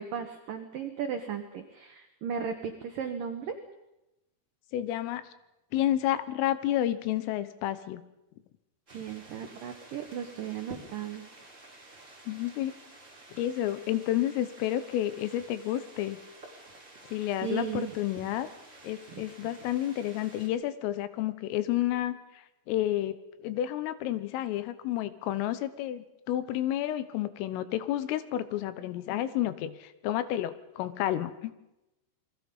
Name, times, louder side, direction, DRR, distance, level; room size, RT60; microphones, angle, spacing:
voice 1, 0.0-3.6 8.9-11.2 17.4-17.9 19.1-19.2, right 7 dB, 85° right, 6 dB, 1.9 m, -36 dB
voice 2, 4.7-5.2 5.7-8.0 12.3-12.7 13.3-16.2 17.1-18.5 18.8-31.5, left 12 dB, 80° left, 13 dB, 3.6 m, -30 dB
sound 1, 8.9-20.5, right 2 dB, 15° right, 3.5 m, -51 dB
28.5 x 21.5 x 5.5 m, 0.94 s
omnidirectional pair, 5.9 m